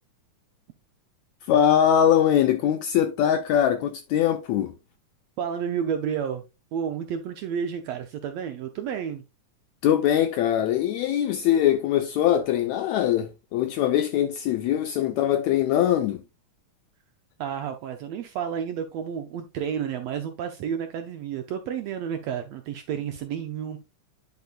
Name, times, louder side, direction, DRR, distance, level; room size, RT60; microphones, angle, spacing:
voice 1, 1.5-4.7 9.8-16.2, left 10 dB, 90° left, 1.6 m, -22 dB
voice 2, 5.4-6.4 6.7-9.2 17.4-23.8, right 8 dB, 85° right, 1.4 m, -31 dB
10.5 x 5.3 x 2.3 m
omnidirectional pair, 3.8 m